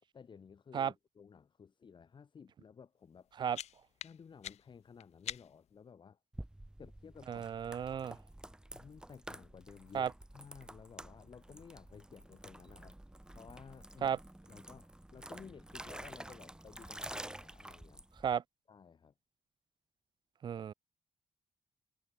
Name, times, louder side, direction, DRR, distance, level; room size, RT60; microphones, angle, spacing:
voice 1, 0.1-3.3 4.0-6.2 6.8-7.5 8.1-8.2 8.7-13.0 13.3-14.2 14.5-18.0 18.7-19.1, left 6 dB, 45° left, 3.9 m, -55 dB
sound 1, 3.1-5.8, left 11 dB, 80° left, 1.1 m, -47 dB
sound 2, 6.3-18.4, right 1 dB, 5° right, 1.2 m, -50 dB
voice 2, 7.3-8.2 9.9-10.1 14.0-14.2 18.2-18.4 20.4-20.7, right 8 dB, 45° right, 0.4 m, -33 dB
cardioid pair, 110°, 11 cm